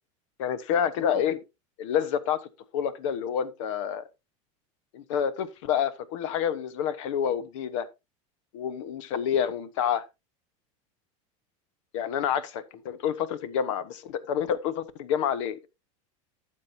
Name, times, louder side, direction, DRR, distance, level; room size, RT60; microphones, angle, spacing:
voice 1, 0.4-1.4 1.8-4.0 4.9-7.9 8.5-10.0 11.9-15.7, left 8 dB, 75° left, 1.2 m, -28 dB
12.5 x 7.5 x 2.7 m
supercardioid pair, 150°, 17 cm